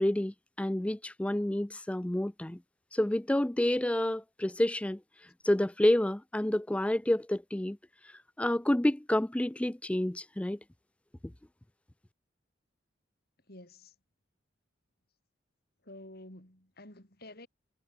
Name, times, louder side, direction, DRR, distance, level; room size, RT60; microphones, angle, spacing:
voice 1, 0.0-2.6 2.9-5.0 5.4-7.8 8.4-10.6, left 1 dB, 5° left, 0.3 m, -29 dB
voice 2, 13.5-13.9 15.8-17.5, left 1 dB, 55° left, 5.6 m, -50 dB
head